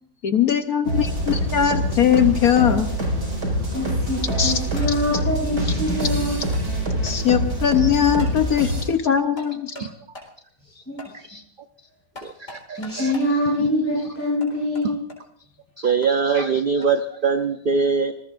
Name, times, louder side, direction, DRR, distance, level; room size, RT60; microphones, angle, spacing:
voice 1, 0.2-2.9 4.4-4.5 7.0-9.7, left 8 dB, 65° left, 8 dB, 1.4 m, -20 dB
sound 1, 0.9-8.8, equal, 80° right, 5.6 m, -25 dB
voice 2, 3.7-6.4 10.6-11.2 12.7-15.0, left 1 dB, 5° left, -5 dB, 7.3 m, -25 dB
sound 2, 3.9-4.2 4.8-5.2 6.0-6.1 6.5-6.7 7.1-7.2 8.2-8.4 9.4-9.9 10.1-10.3 11.0-11.1 12.1-13.3 14.4-15.2 16.0-16.1 16.8-16.9, left 2 dB, 40° left, 4.4 m, -41 dB
voice 3, 12.2-13.1 15.8-18.1, right 5 dB, 45° right, 7 dB, 0.8 m, -23 dB
25.5 x 20.0 x 2.6 m, 0.66 s
omnidirectional pair, 1.8 m